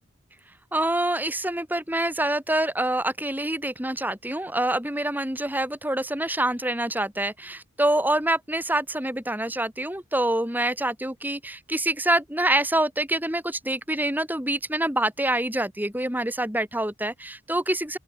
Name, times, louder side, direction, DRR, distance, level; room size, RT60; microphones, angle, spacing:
voice 1, 0.7-18.0, right 1 dB, 10° right, 4.2 m, -26 dB
open air
head